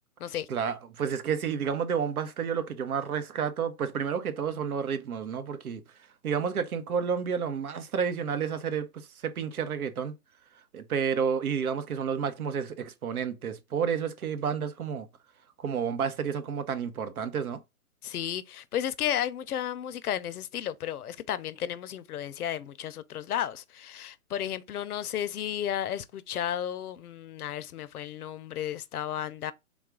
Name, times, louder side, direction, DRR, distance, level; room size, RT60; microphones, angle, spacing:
voice 1, 0.5-5.8 6.2-10.1 10.7-15.1 15.6-17.6, right 7 dB, 80° right, 0.8 m, -30 dB
voice 2, 18.0-29.5, left 10 dB, 85° left, 0.6 m, -33 dB
3.6 x 2.4 x 3.6 m
hypercardioid pair, 160°, 43 cm